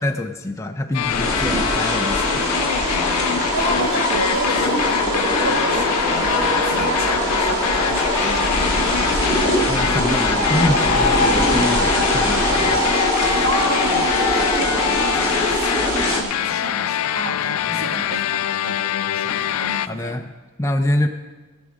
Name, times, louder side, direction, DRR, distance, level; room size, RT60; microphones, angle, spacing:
voice 1, 0.0-2.2 9.7-13.0 17.7-17.9 19.2-19.3 19.9-20.3 20.6-21.1, left 1 dB, 15° left, 4 dB, 0.5 m, -25 dB
sound 1, 0.9-19.9, left 10 dB, 85° left, 0.4 m, -25 dB
sound 2, 1.0-16.2, left 1 dB, 20° right, 2.4 m, -21 dB
voice 2, 3.5-9.4 13.4-18.9 19.1-20.3, right 2 dB, 75° right, 4 dB, 1.5 m, -30 dB
13.5 x 6.2 x 7.2 m, 1.2 s
head